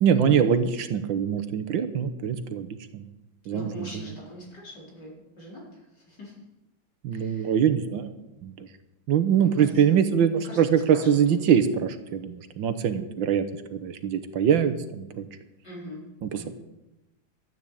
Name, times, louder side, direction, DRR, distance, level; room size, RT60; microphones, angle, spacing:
voice 1, 0.0-3.0 3.5-4.1 7.0-8.1 8.4-8.7 9.1-13.5 13.7-15.3 16.2-16.5, right 8 dB, 75° right, 10 dB, 1.7 m, -23 dB
voice 2, 3.5-6.3 7.1-7.5 9.4-9.7 10.3-11.7 15.6-16.0 16.3-16.5, left 1 dB, 60° left, -3 dB, 5.3 m, -42 dB
13.0 x 9.1 x 8.5 m, 0.95 s
omnidirectional pair, 2.1 m